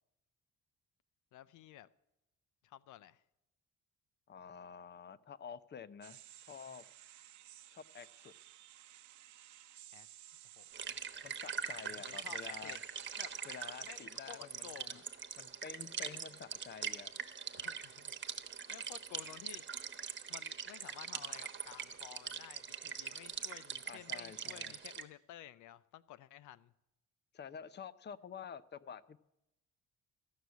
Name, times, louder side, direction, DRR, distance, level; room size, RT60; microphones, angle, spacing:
voice 1, 1.3-1.9 2.6-3.2 9.9-10.1 10.6-11.0 12.0-12.8 13.2-13.3 13.8-15.0 17.5-19.6 20.3-26.7, left 12 dB, 80° left, 0.6 m, -54 dB
voice 2, 4.3-6.2 6.5-6.9 7.7-8.3 11.2-12.8 13.4-15.0 15.4-17.2 23.9-24.7 27.3-29.2, left 7 dB, 35° left, 0.6 m, -49 dB
sound 1, 6.0-14.1, right 13 dB, 70° right, 0.8 m, -57 dB
sound 2, 10.7-25.0, right 7 dB, 40° right, 1.2 m, -43 dB
14.5 x 6.4 x 9.4 m
cardioid pair, 90°, 30 cm